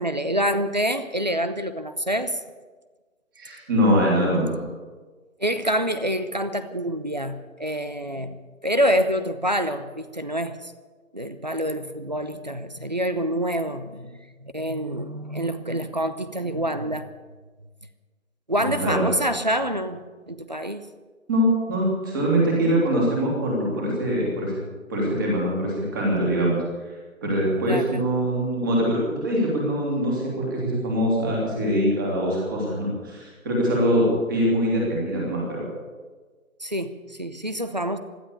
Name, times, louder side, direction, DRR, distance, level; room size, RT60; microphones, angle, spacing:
voice 1, 0.0-2.4 5.4-8.4 8.6-10.7 11.1-17.1 18.5-20.8 27.7-28.1 36.6-38.0, equal, 35° right, 11 dB, 0.7 m, -26 dB
voice 2, 3.3-4.6 18.6-19.0 21.3-24.6 24.9-26.6 27.2-35.6, equal, 15° right, -3 dB, 3.1 m, -23 dB
16.5 x 12.5 x 6.9 m, 1.4 s
hypercardioid pair, 175°, 41 cm